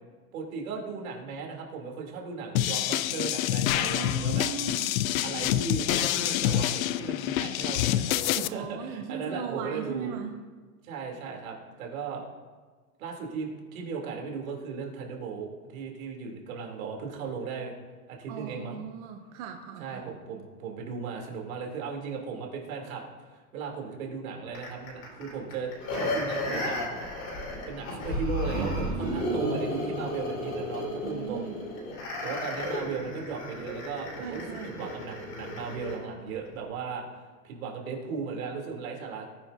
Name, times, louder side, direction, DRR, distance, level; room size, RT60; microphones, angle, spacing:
voice 1, 0.3-4.5 5.2-10.1 10.8-12.2 13.0-17.7 18.1-18.8 19.8-26.8 27.7-31.5 32.2-37.0 37.4-39.3, right 5 dB, 60° right, 0 dB, 3.2 m, -36 dB
sound 1, 2.6-8.5, left 12 dB, 60° left, 0.6 m, -27 dB
voice 2, 3.8-4.9 8.4-10.3 18.3-20.1 28.9-29.4 31.0-31.6 34.2-34.9, right 7 dB, 25° right, 3 dB, 0.6 m, -38 dB
sound 2, 24.5-36.0 36.5-36.6, left 1 dB, 30° left, 4.2 m, -33 dB
18.5 x 10.0 x 2.7 m, 1.4 s
supercardioid pair, 160°, 46 cm